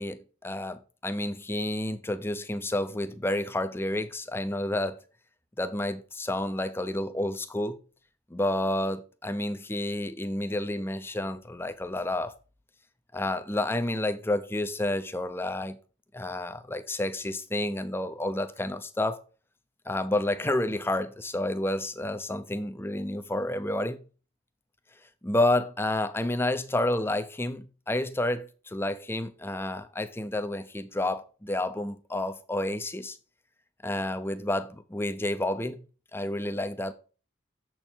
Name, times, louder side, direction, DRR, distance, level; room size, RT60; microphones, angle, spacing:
voice 1, 0.0-5.0 5.6-7.8 8.3-12.3 13.1-15.8 16.1-19.2 19.9-24.0 25.2-33.2 33.8-35.8 36.1-36.9, left 1 dB, 10° left, 0.6 m, -30 dB
7.5 x 4.6 x 5.2 m
head